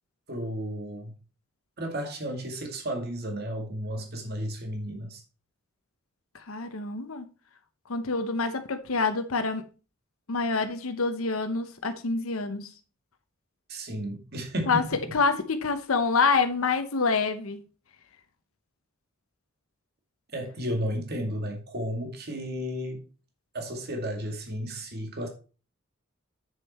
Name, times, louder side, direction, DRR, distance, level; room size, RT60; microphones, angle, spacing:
voice 1, 0.3-1.1 1.8-5.2 13.7-14.9 20.3-23.0 23.5-25.3, equal, 50° right, 2.2 m, -33 dB
voice 2, 6.5-7.3 7.9-9.6 10.3-12.7 14.7-14.8 15.1-17.6, left 4 dB, 80° left, 0.9 m, -26 dB
7.5 x 6.6 x 4.2 m
head